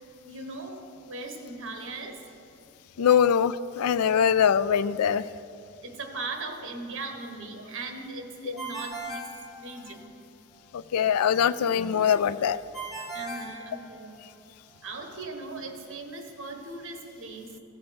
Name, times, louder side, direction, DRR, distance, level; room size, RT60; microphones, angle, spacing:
voice 1, 0.2-2.3 3.0-3.1 5.8-10.1 13.1-14.2 14.8-17.5, right 3 dB, 60° right, 4 dB, 1.4 m, -39 dB
voice 2, 3.0-5.3 8.4-8.5 10.7-12.6, left 8 dB, 80° left, 17 dB, 0.4 m, -23 dB
Ringtone, 8.6-10.2 12.7-14.4, right 2 dB, ahead, 1.6 m, -38 dB
16.5 x 7.0 x 5.2 m, 2.8 s
head